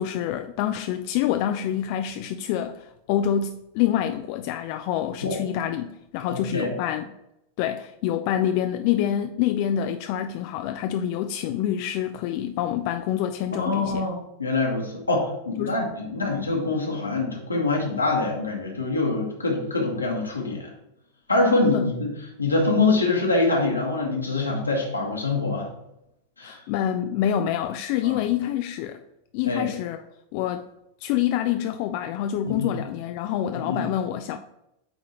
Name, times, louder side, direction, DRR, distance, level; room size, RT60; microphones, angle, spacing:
voice 1, 0.0-7.1 7.6-14.1 15.6-15.8 21.7-21.9 26.4-29.0 29.3-30.0 30.3-30.7 31.0-34.4, left 10 dB, 45° left, 0.3 m, -26 dB
voice 2, 6.3-6.7 13.5-14.1 14.4-20.7 21.3-25.7 26.4-26.6 28.0-28.3 29.4-29.7 32.4-32.8 33.5-33.9, left 3 dB, 80° left, 1.5 m, -25 dB
8.8 x 3.7 x 2.9 m
figure-of-eight pair, 90°, 0 cm